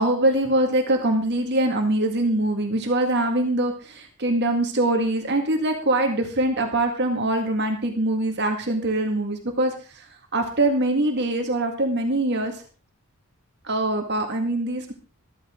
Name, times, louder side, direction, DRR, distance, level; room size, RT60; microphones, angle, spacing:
voice 1, 0.0-12.6 13.6-14.9, right 1 dB, 50° right, 3 dB, 1.9 m, -23 dB
13.5 x 13.5 x 3.7 m, 0.36 s
head